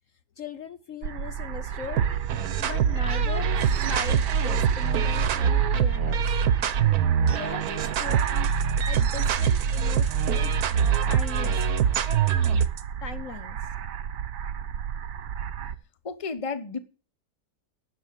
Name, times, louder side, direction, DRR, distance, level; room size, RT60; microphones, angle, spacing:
voice 1, 0.4-2.1 2.6-6.2 7.2-8.5 8.9-10.5 11.1-11.6 13.0-13.6, left 6 dB, 55° left, 1.0 m, -39 dB
sound 1, 1.0-15.8, right 9 dB, 85° right, 1.4 m, -33 dB
sound 2, 2.0-12.8, right 7 dB, 65° right, 1.3 m, -24 dB
voice 2, 16.0-16.8, left 4 dB, 25° left, 0.8 m, -32 dB
11.0 x 7.1 x 8.0 m
omnidirectional pair, 1.8 m